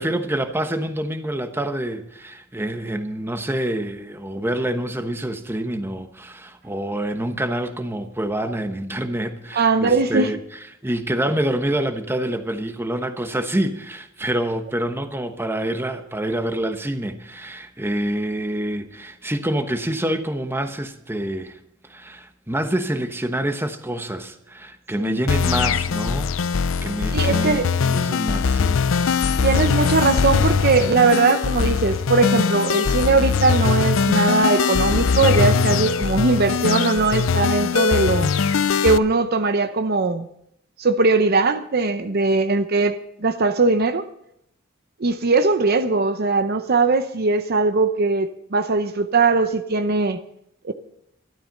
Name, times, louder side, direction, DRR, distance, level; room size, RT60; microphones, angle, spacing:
voice 1, 0.0-10.4 10.8-21.6 21.9-26.3 26.8-28.8, right 1 dB, 10° right, 1.1 m, -26 dB
voice 2, 9.5-10.3 25.0-25.2 27.1-27.7 29.4-38.3 38.8-40.3 40.8-44.1 45.0-50.2 50.6-50.7, right 3 dB, 50° right, 0.7 m, -20 dB
sound 1, 25.3-39.0, left 5 dB, 80° left, 0.5 m, -21 dB
12.5 x 12.5 x 6.6 m
head